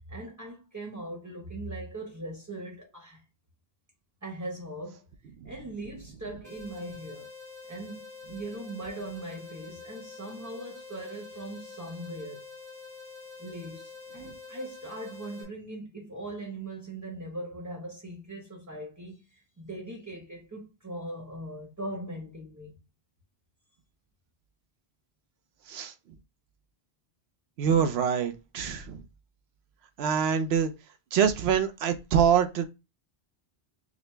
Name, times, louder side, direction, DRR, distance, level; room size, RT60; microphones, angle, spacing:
voice 1, 0.0-3.2 4.2-5.0 5.4-7.3 7.7-12.5 13.4-22.8, right 1 dB, 15° right, 0.9 m, -40 dB
sound 1, 6.4-15.4, left 4 dB, 90° right, 1.5 m, -46 dB
voice 2, 27.6-29.0 30.0-30.7 31.1-32.7, right 7 dB, 75° right, 0.8 m, -25 dB
5.0 x 2.0 x 3.2 m
omnidirectional pair, 1.1 m